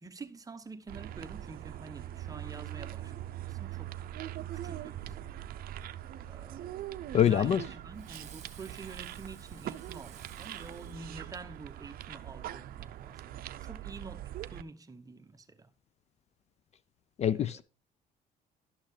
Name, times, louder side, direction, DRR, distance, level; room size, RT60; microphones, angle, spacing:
voice 1, 0.0-3.9 4.4-5.2 6.3-15.7 17.3-17.5, right 3 dB, 20° right, 0.8 m, -48 dB
sound 1, 0.9-14.6, right 13 dB, 60° right, 0.5 m, -42 dB
voice 2, 7.1-7.6 17.2-17.6, left 9 dB, 40° left, 0.4 m, -25 dB
Fireworks, 7.9-11.8, right 8 dB, 45° right, 1.2 m, -55 dB
11.5 x 6.3 x 3.2 m
cardioid pair, 110°, 17 cm